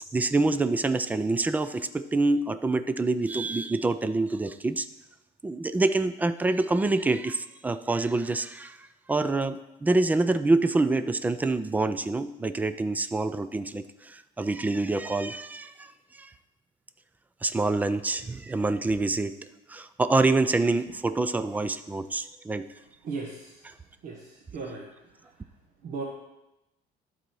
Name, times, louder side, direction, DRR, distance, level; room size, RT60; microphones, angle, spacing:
voice 1, 0.1-4.9 5.4-16.3 17.4-19.4 19.7-22.7 23.7-23.8, right 2 dB, 10° right, 12 dB, 0.3 m, -26 dB
voice 2, 23.0-23.6 24.0-24.9 25.8-26.0, right 4 dB, 50° right, -1 dB, 1.2 m, -36 dB
11.5 x 4.1 x 6.2 m, 0.95 s
cardioid pair, 155°, 17 cm